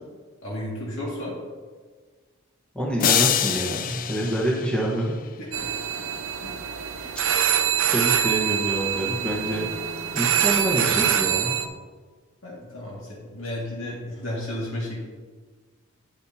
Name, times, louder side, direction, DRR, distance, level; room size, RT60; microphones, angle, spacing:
voice 1, 0.4-1.3 5.4-5.7 6.4-6.5 7.0-7.1 12.4-15.1, left 1 dB, 70° left, -5 dB, 2.3 m, -33 dB
voice 2, 2.7-5.1 7.9-9.7 10.1-11.6, right 1 dB, 5° left, -4 dB, 1.3 m, -26 dB
sound 1, 3.0-5.3, left 9 dB, 40° left, 0.4 m, -25 dB
sound 2, 5.5-11.7, right 9 dB, 85° right, 0.7 m, -24 dB
10.5 x 8.9 x 2.9 m, 1.5 s
head